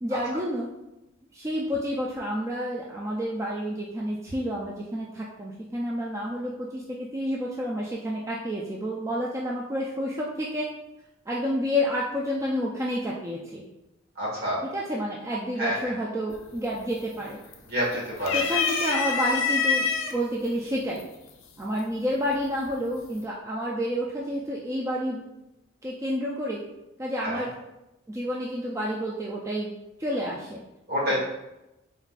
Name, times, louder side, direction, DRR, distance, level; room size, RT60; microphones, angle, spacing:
voice 1, 0.0-0.7 1.3-10.7 11.3-13.6 14.7-17.4 18.3-21.1 21.6-25.2 25.8-26.6 27.0-27.5 28.1-29.7 30.0-30.6 31.1-31.2, equal, 15° right, -3 dB, 0.3 m, -29 dB
voice 2, 14.1-14.6 15.6-15.9 17.7-18.4 27.2-27.4 30.9-31.2, equal, 50° right, -5 dB, 1.5 m, -27 dB
sound 1, 16.3-16.7 17.1-17.8 18.2-20.1 21.0-21.1 22.3-22.8, left 5 dB, 80° left, 0.5 m, -26 dB
4.0 x 3.6 x 2.4 m, 0.93 s
head